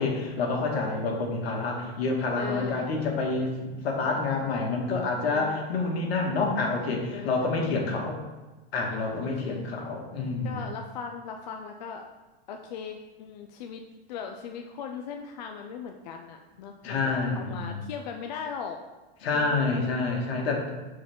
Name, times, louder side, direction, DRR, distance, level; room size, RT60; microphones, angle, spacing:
voice 1, 0.0-8.2 8.7-10.6 16.8-17.8 19.2-20.7, left 3 dB, 75° left, 0 dB, 2.0 m, -28 dB
voice 2, 2.4-2.9 5.3-5.7 7.1-7.5 8.9-9.6 10.4-12.1 12.5-13.8 14.1-18.8 19.3-19.7, left 6 dB, 45° left, 4 dB, 0.5 m, -39 dB
10.5 x 4.7 x 3.7 m, 1.1 s
supercardioid pair, 175°, 31 cm